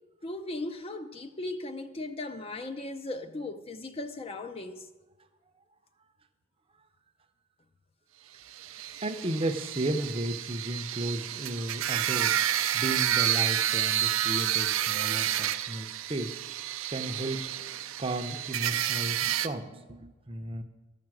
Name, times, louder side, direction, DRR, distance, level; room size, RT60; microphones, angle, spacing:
voice 1, 0.2-4.9, left 2 dB, 25° left, 0.5 m, -37 dB
sound 1, 8.5-19.5, right 11 dB, 70° right, 0.5 m, -30 dB
voice 2, 9.0-12.4 12.7-16.4 16.9-17.4 18.0-20.6, right 1 dB, 25° right, 0.6 m, -34 dB
12.0 x 5.9 x 7.6 m
head